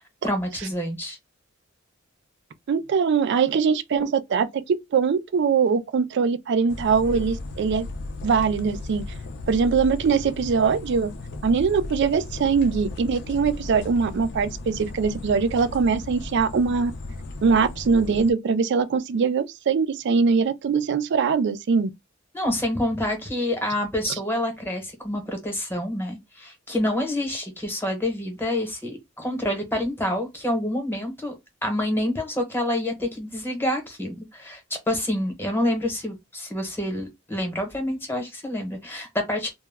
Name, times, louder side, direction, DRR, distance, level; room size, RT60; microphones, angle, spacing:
voice 1, 0.2-1.2 22.3-31.3 31.6-34.6 34.9-39.5, left 1 dB, 10° left, 0.9 m, -27 dB
voice 2, 2.7-7.9 8.2-9.1 9.5-11.1 11.4-16.9 17.4-21.9 24.1-24.2, right 5 dB, 60° right, 0.4 m, -22 dB
sound 1, 6.7-18.3, left 2 dB, 60° left, 0.4 m, -36 dB
2.2 x 2.0 x 3.3 m
head